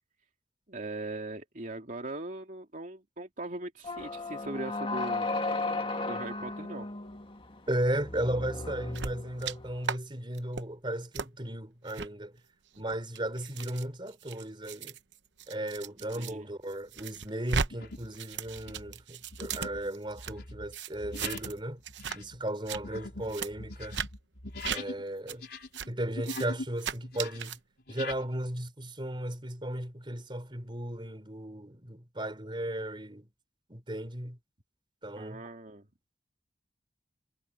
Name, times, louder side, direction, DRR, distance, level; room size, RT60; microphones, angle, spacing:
voice 1, 0.7-5.3 6.1-6.9 16.1-16.5 35.2-35.9, right 2 dB, 45° right, 2.7 m, -40 dB
sound 1, 3.8-9.8, left 2 dB, 30° left, 2.1 m, -35 dB
voice 2, 7.7-12.3 12.8-15.0 15.5-21.8 22.1-24.0 24.7-25.5 25.9-27.6 27.9-33.3 33.7-34.4 35.0-35.4, right 1 dB, 30° right, 3.8 m, -35 dB
sound 2, 8.9-9.5 9.8-10.0 10.3-10.6 11.1-11.3 11.9-12.1 12.7-16.3 16.7-17.7 18.0-20.3 20.7-21.6 21.8-22.2 22.5-22.8 23.3-23.5 23.9-24.1 24.6-24.8 25.3-25.4 25.7-25.9 26.2-26.5 26.8-27.6, right 6 dB, 85° right, 0.9 m, -36 dB
sound 3, 16.0-16.3 16.9-17.1 17.7-18.2 18.4-25.0 25.3-26.7 27.0-28.2, left 3 dB, 65° left, 5.2 m, -42 dB
head